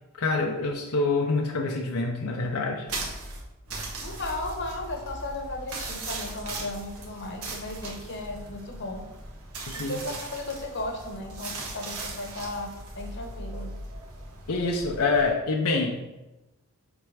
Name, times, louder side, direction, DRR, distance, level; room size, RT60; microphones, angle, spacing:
voice 1, 0.2-2.9 9.7-10.0 14.5-16.1, left 3 dB, 85° left, 1 dB, 0.8 m, -26 dB
sound 1, 2.9-15.3, right 2 dB, 80° right, 1.6 m, -38 dB
voice 2, 4.0-9.0 9.7-13.7, left 2 dB, 55° left, 2 dB, 1.1 m, -35 dB
7.4 x 3.5 x 4.9 m, 1.0 s
head